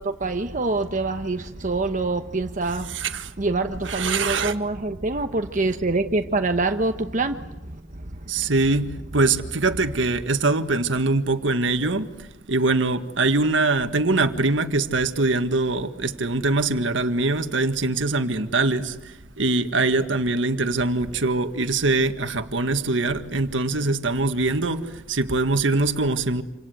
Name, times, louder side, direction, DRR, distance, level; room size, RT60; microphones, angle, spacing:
voice 1, 0.0-8.5, right 3 dB, 45° right, 1.1 m, -26 dB
voice 2, 2.9-3.3 3.8-4.5 8.3-26.4, right 3 dB, 85° right, 1.8 m, -23 dB
28.0 x 27.0 x 7.9 m
head